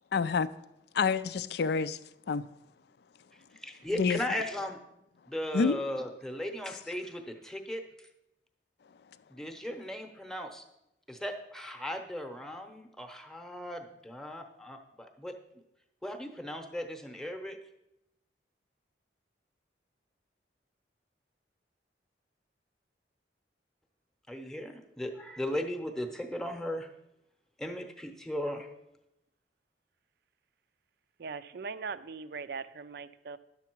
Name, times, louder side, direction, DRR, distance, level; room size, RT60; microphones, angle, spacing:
voice 1, 0.1-0.5 0.9-2.0 2.3-2.5 3.9-4.2 5.5-5.8, left 5 dB, 60° left, 0.4 m, -27 dB
voice 2, 3.6-4.8 5.3-7.8 9.3-10.6 11.1-15.4 16.0-17.6 24.3-26.9 27.6-28.7, left 1 dB, 5° left, 0.8 m, -37 dB
voice 3, 31.2-33.4, right 5 dB, 60° right, 0.4 m, -40 dB
10.5 x 6.9 x 4.6 m
head